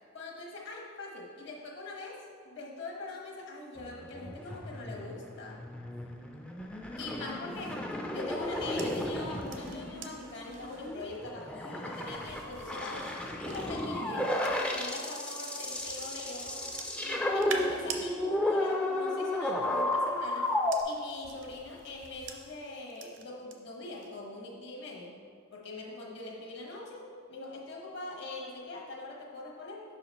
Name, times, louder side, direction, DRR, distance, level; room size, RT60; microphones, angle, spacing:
voice 1, 0.0-2.2 2.4-5.6 7.0-7.7 8.1-16.7 17.0-20.5 20.8-25.2 25.5-29.8, left 2 dB, 55° left, -1 dB, 1.0 m, -42 dB
sound 1, 3.8-20.8, left 1 dB, 5° left, 0.3 m, -33 dB
sound 2, 7.5-15.0 15.6-18.1 19.3-23.5 23.9-24.3, right 5 dB, 60° right, 0.6 m, -47 dB
5.8 x 4.8 x 4.1 m, 2.1 s
head